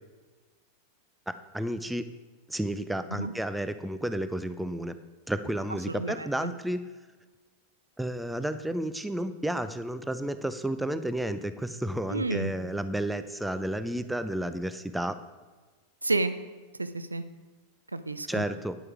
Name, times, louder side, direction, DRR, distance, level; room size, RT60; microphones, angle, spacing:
voice 1, 1.3-2.0 2.5-4.9 5.3-6.8 8.0-15.2 18.3-18.8, right 1 dB, 5° right, 11 dB, 0.5 m, -31 dB
voice 2, 12.1-12.5 16.0-16.3 16.8-17.2 17.9-18.4, right 2 dB, 80° right, 11 dB, 0.5 m, -30 dB
9.5 x 7.7 x 4.8 m, 1.3 s
figure-of-eight pair, 90°, 0 cm